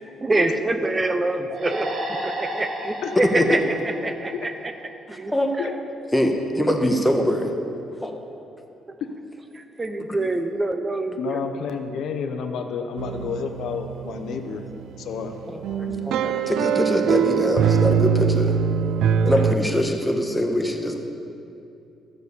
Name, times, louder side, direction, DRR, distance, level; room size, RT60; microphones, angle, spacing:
voice 1, 0.2-1.9 2.2-4.7 5.1-5.7 8.9-9.0 9.5-11.4, right 2 dB, 25° right, 7 dB, 0.7 m, -26 dB
sound 1, 1.5-5.0, right 1 dB, 60° right, 2.3 m, -33 dB
voice 2, 3.3-3.6 5.3-5.6 6.1-7.5 8.0-8.1 15.5-18.5 19.3-21.0, equal, 5° left, 3 dB, 1.3 m, -23 dB
voice 3, 11.2-14.6 15.0-15.4 15.8-16.1, left 6 dB, 75° left, 6 dB, 0.8 m, -30 dB
sound 2, 13.0-19.5, right 8 dB, 80° right, 0.4 m, -23 dB
12.5 x 6.6 x 6.8 m, 2.7 s
cardioid pair, 90°, 0 cm